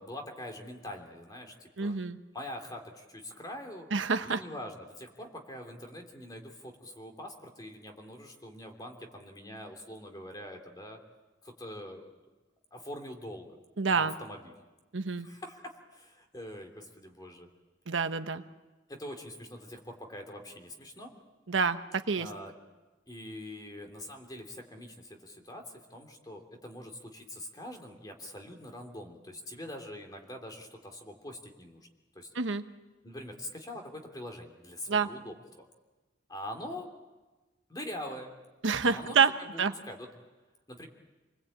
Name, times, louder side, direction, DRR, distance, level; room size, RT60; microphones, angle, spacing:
voice 1, 0.0-1.9 2.3-3.9 4.2-11.0 11.4-12.1 12.7-13.5 13.9-14.5 15.1-17.5 18.9-21.1 22.1-22.5 23.1-25.6 25.9-31.9 32.1-32.3 33.0-35.7 36.3-36.9 37.7-38.3 38.9-39.6 39.9-40.1 40.7-40.9, left 1 dB, 20° left, 3 dB, 3.1 m, -44 dB
voice 2, 1.8-2.2 3.9-4.4 13.8-14.1 14.9-15.3 17.9-18.4 21.5-22.3 32.3-32.6 34.9-35.1 38.6-39.3 39.6-39.7, right 5 dB, 85° right, 9 dB, 1.1 m, -27 dB
28.0 x 20.5 x 8.8 m, 1.2 s
head